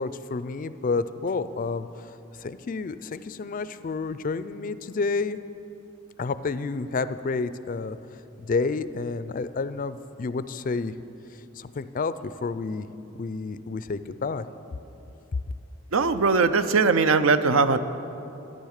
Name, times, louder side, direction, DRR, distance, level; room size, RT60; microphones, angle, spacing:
voice 1, 0.0-5.4 6.2-10.9 11.6-12.9 13.1-14.5, left 4 dB, 40° left, 14 dB, 0.4 m, -30 dB
voice 2, 15.9-17.8, right 4 dB, 75° right, 11 dB, 0.6 m, -20 dB
13.5 x 10.5 x 6.5 m, 3.0 s
head